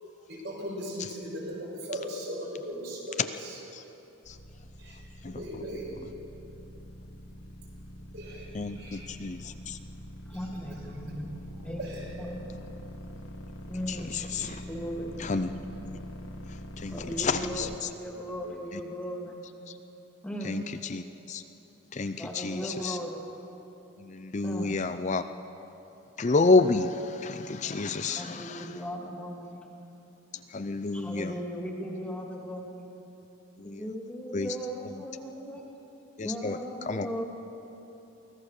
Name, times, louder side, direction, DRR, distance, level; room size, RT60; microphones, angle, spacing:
voice 1, 0.3-3.6 4.8-5.0 5.3-6.0 8.1-9.1 11.8-12.1 14.3-14.6, equal, 55° right, -2 dB, 5.3 m, -38 dB
sound 1, 4.2-17.8, equal, 80° left, 1.7 m, -44 dB
voice 2, 8.5-9.8 13.9-14.6 15.2-16.0 16.8-17.7 18.7-18.8 20.4-21.4 21.9-23.0 24.0-25.2 26.2-28.7 30.5-31.3 33.6-33.8 34.3-34.5 36.2-36.6 36.9-37.1, left 3 dB, 35° left, 9 dB, 0.5 m, -29 dB
voice 3, 10.3-11.3 11.6-11.8 12.2-12.5 13.7-15.5 16.9-19.4 20.2-20.6 22.2-23.3 24.4-24.7 28.2-29.6 30.9-32.9 33.6-35.7 36.2-37.2, equal, 5° left, -1 dB, 2.3 m, -37 dB
24.0 x 16.5 x 6.6 m, 3.0 s
head